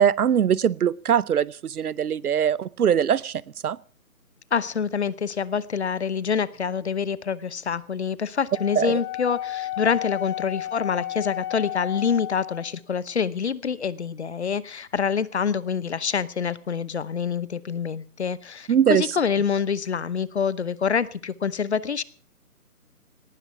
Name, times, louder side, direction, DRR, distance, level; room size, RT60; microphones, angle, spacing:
voice 1, 0.0-3.8 8.8-9.0 18.7-19.1, right 8 dB, 80° right, 24 dB, 0.7 m, -22 dB
voice 2, 4.5-22.0, left 6 dB, 50° left, 20 dB, 0.9 m, -26 dB
Wind instrument woodwind instrument, 8.5-12.7, left 14 dB, 15° left, 2.3 m, -32 dB
18.5 x 12.0 x 5.8 m, 0.40 s
hypercardioid pair, 170°, 44 cm